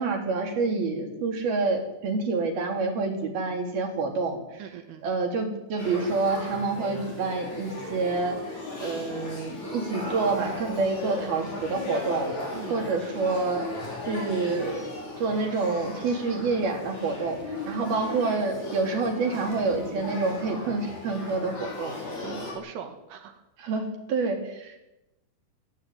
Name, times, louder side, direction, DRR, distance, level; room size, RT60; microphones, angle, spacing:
voice 1, 0.0-4.6 5.0-8.4 8.8-12.3 12.7-13.7 14.1-14.9 15.2-22.0 23.6-24.8, right 3 dB, 50° right, 3 dB, 5.2 m, -28 dB
voice 2, 4.6-5.1 12.5-12.8 17.8-18.4 22.2-23.4, right 8 dB, 80° right, 7 dB, 4.3 m, -41 dB
Male speech man speaking / Child speech kid speaking / Conversation, 5.8-22.5, left 2 dB, 35° left, 7.0 m, -37 dB
21.0 x 15.5 x 9.6 m, 0.94 s
omnidirectional pair, 5.7 m